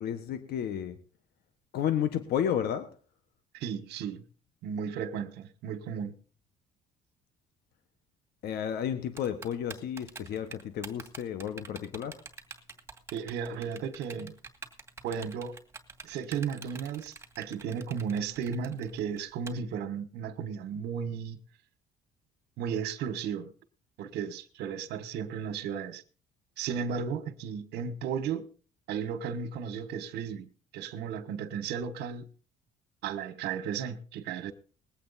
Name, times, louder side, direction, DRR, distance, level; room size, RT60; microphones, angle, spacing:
voice 1, 0.0-1.0 1.7-2.9 8.4-12.2, left 9 dB, 70° left, 1.4 m, -32 dB
voice 2, 3.5-4.2 4.6-6.2 13.1-14.3 15.0-15.6 16.0-21.4 22.6-23.5 24.0-26.0 26.6-28.5 28.9-32.3 33.0-34.5, right 7 dB, 80° right, 1.4 m, -34 dB
Typing, 9.2-19.5, right 4 dB, 15° right, 2.3 m, -46 dB
20.5 x 8.6 x 4.1 m
cardioid pair, 110°, 17 cm